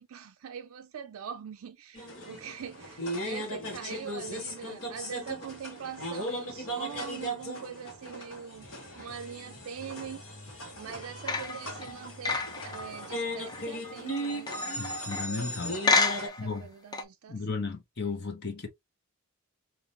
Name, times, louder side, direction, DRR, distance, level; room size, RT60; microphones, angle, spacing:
voice 1, 0.0-14.9 16.1-17.7, right 7 dB, 70° right, 0.4 m, -43 dB
sound 1, 1.9-16.3, equal, 75° left, 1.8 m, -37 dB
sound 2, 11.3-15.4 15.8-16.6 16.9-17.0, left 3 dB, 20° left, 0.5 m, -30 dB
voice 2, 14.8-16.6 17.3-18.7, left 4 dB, 50° left, 0.8 m, -35 dB
3.7 x 3.0 x 2.9 m
head